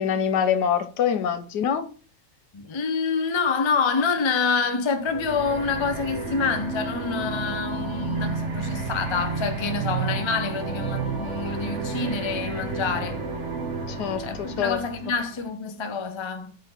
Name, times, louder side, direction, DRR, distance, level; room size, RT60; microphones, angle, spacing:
voice 1, 0.0-1.9 13.9-14.8, left 8 dB, 75° left, 1.3 m, -25 dB
voice 2, 2.5-13.2 14.2-16.6, left 5 dB, 40° left, 0.3 m, -27 dB
sound 1, 5.0-15.5, right 3 dB, 45° right, 1.4 m, -31 dB
6.7 x 4.3 x 3.9 m
omnidirectional pair, 1.9 m